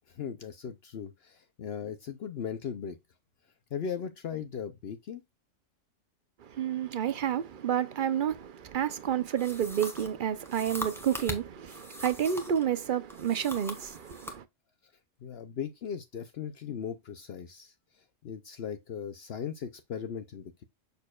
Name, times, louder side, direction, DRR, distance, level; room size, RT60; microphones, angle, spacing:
voice 1, 0.1-3.0 3.7-5.2 15.2-17.7 18.2-20.6, left 7 dB, 60° left, 0.9 m, -38 dB
voice 2, 6.4-14.4, right 9 dB, 50° right, 0.7 m, -30 dB
sound 1, 9.4-12.7 13.1-14.4, equal, ahead, 1.2 m, -41 dB
6.9 x 6.5 x 2.3 m
omnidirectional pair, 1.2 m